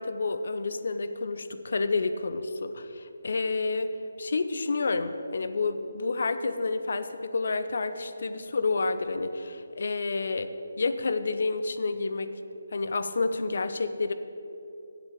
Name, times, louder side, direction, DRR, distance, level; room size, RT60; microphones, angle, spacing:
voice 1, 0.0-10.5 10.8-12.3 12.7-14.1, left 3 dB, 60° left, 10 dB, 0.7 m, -29 dB
8.4 x 7.6 x 8.3 m, 2.8 s
hypercardioid pair, 165°, 0 cm